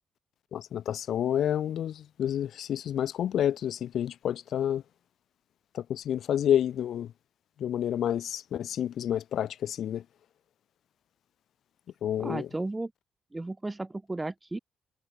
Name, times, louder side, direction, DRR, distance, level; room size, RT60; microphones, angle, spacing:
voice 1, 0.5-4.8 5.7-7.1 7.6-10.0 12.0-12.5, left 10 dB, 70° left, 0.5 m, -29 dB
voice 2, 12.2-12.9 13.3-14.6, right 2 dB, 15° right, 0.7 m, -34 dB
cardioid pair, 90°, 0 cm